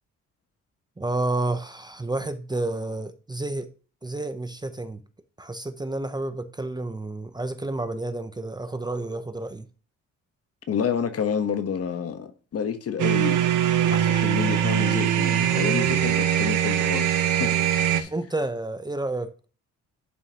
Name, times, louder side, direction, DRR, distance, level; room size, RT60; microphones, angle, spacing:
voice 1, 1.0-3.7 4.0-5.0 5.4-9.7 18.1-19.5, right 2 dB, 15° right, 0.7 m, -30 dB
voice 2, 10.7-13.4 13.9-17.6 17.9-18.1, left 7 dB, 50° left, 1.1 m, -29 dB
sound 1, 13.0-18.0, right 10 dB, 80° right, 1.0 m, -22 dB
11.0 x 5.9 x 2.9 m
cardioid pair, 90°, 30 cm